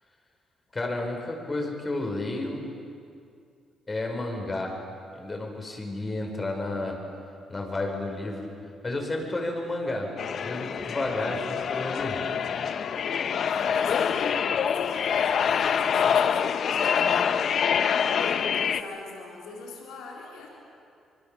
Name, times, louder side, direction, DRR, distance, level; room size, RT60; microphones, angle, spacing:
voice 1, 0.7-2.7 3.9-4.8 5.1-7.0 7.5-8.5 8.8-10.1 10.4-12.2, left 2 dB, 25° left, 2 dB, 5.5 m, -31 dB
sound 1, 10.2-18.8, left 7 dB, 60° left, 0.9 m, -25 dB
voice 2, 13.5-20.5, left 3 dB, 90° left, -2 dB, 4.0 m, -42 dB
24.5 x 24.5 x 7.2 m, 2.4 s
cardioid pair, 90°, 0 cm